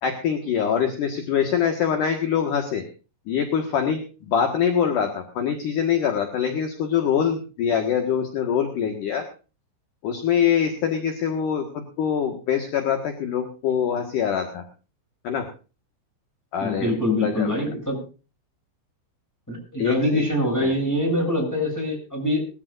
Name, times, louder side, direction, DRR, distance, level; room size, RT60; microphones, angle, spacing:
voice 1, 0.0-2.8 3.3-9.2 10.0-14.6 15.2-15.5 16.5-16.9 17.2-17.6 19.8-20.3 20.6-20.7, left 8 dB, 60° left, 4 dB, 2.4 m, -24 dB
voice 2, 16.6-18.0 19.5-22.4, left 1 dB, 5° left, 1 dB, 7.5 m, -24 dB
22.0 x 14.5 x 2.6 m, 0.34 s
omnidirectional pair, 5.9 m